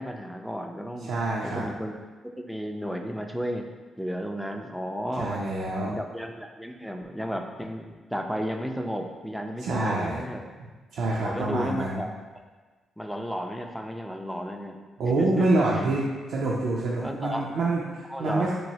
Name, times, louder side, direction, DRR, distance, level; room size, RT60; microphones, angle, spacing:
voice 1, 0.0-1.1 1.4-1.9 2.4-3.7 4.0-5.4 5.8-10.5 11.2-12.1 13.0-14.8 15.2-15.9 17.0-17.5 18.1-18.5, equal, ahead, 3 dB, 0.3 m, -33 dB
voice 2, 1.0-1.7 5.2-5.9 9.6-10.2 10.9-12.0 15.0-16.0 16.3-18.5, right 2 dB, 75° right, -4 dB, 0.4 m, -26 dB
3.0 x 2.6 x 2.7 m, 1.3 s
cardioid pair, 70°, 0 cm